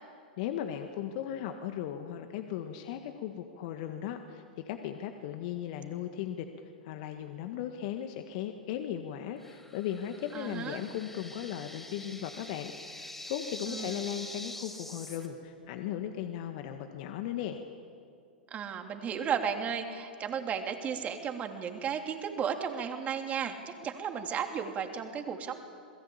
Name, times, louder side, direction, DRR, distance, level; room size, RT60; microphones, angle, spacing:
voice 1, 0.4-17.6, left 10 dB, 50° left, 6 dB, 1.8 m, -37 dB
sound 1, 9.4-15.3, left 1 dB, 5° left, 4.4 m, -45 dB
voice 2, 10.3-10.8 13.7-14.0 18.5-25.6, right 7 dB, 30° right, 4 dB, 3.1 m, -34 dB
27.5 x 21.0 x 8.8 m, 2.3 s
figure-of-eight pair, 100°, 5 cm